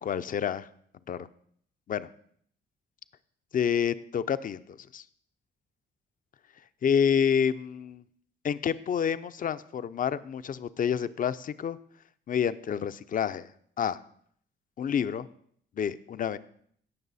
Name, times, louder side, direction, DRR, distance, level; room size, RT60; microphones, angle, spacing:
voice 1, 0.0-0.7 1.1-1.3 1.9-2.1 3.5-5.0 6.8-8.0 8.4-11.8 12.3-13.5 13.8-14.0 14.8-15.3 15.8-16.4, left 8 dB, 45° left, 14 dB, 0.5 m, -28 dB
16.5 x 6.0 x 4.1 m, 0.63 s
cardioid pair, 90°, 20 cm